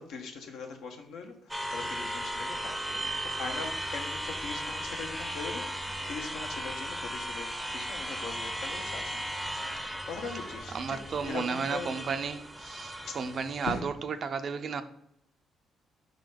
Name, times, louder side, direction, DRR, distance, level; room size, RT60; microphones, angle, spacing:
voice 1, 0.0-9.3 9.7-12.0 13.0-13.3 13.6-13.9 14.7-14.8, left 4 dB, 85° left, 1.1 m, -41 dB
sound 1, 1.5-13.8, right 1 dB, 5° right, 0.6 m, -36 dB
sound 2, 1.7-11.3, left 2 dB, 35° left, 0.5 m, -50 dB
voice 2, 10.7-14.8, right 5 dB, 50° right, 0.5 m, -33 dB
5.6 x 3.9 x 5.0 m
cardioid pair, 90°, 0 cm